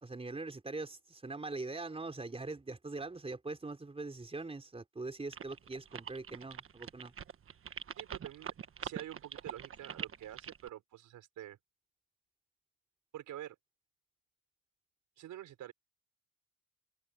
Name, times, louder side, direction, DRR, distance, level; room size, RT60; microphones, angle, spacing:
voice 1, 0.0-7.1, right 3 dB, 20° right, 4.2 m, -42 dB
sound 1, 5.3-10.7, right 8 dB, 45° right, 1.3 m, -43 dB
voice 2, 8.0-8.5 8.8-11.6 13.1-13.5 15.2-15.7, right 12 dB, 80° right, 5.0 m, -47 dB
cardioid pair, 90°, 30 cm